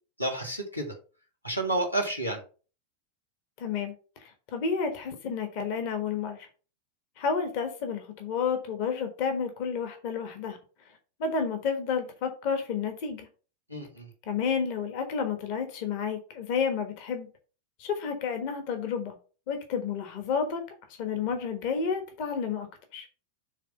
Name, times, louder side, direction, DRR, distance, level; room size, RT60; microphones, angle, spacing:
voice 1, 0.2-0.9 1.4-2.4 13.7-14.1, right 2 dB, 90° left, 1.7 m, -30 dB
voice 2, 3.6-3.9 4.2-6.5 7.2-10.6 11.2-13.3 14.3-17.3 17.8-19.2 19.5-20.6 20.9-22.7 22.9-23.1, left 6 dB, 45° left, 1.3 m, -30 dB
7.4 x 3.5 x 5.5 m
figure-of-eight pair, 90°, 0 cm